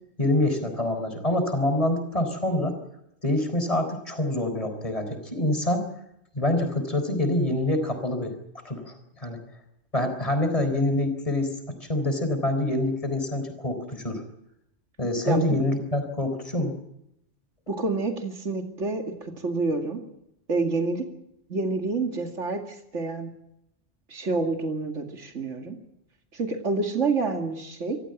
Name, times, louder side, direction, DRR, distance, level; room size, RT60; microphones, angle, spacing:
voice 1, 0.2-2.8 3.2-5.8 6.3-8.3 8.6-9.4 9.9-14.2 15.0-16.8, left 1 dB, 30° left, 7 dB, 4.1 m, -26 dB
voice 2, 17.7-20.0 20.5-21.1 21.5-23.3 24.1-25.8 26.3-28.0, right 3 dB, 75° right, 4 dB, 2.6 m, -28 dB
26.0 x 15.0 x 9.1 m, 0.80 s
omnidirectional pair, 1.3 m